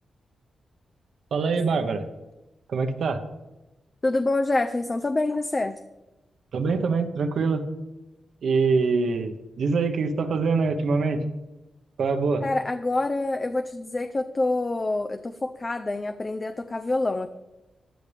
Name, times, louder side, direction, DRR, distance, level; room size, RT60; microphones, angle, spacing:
voice 1, 1.3-2.1 2.7-3.2 6.5-7.6 8.4-11.2 12.0-12.4, right 4 dB, 70° right, 6 dB, 1.2 m, -24 dB
voice 2, 4.0-5.8 12.4-17.3, left 2 dB, 25° left, 7 dB, 0.6 m, -26 dB
15.5 x 10.5 x 3.5 m, 1.0 s
cardioid pair, 105°, 0 cm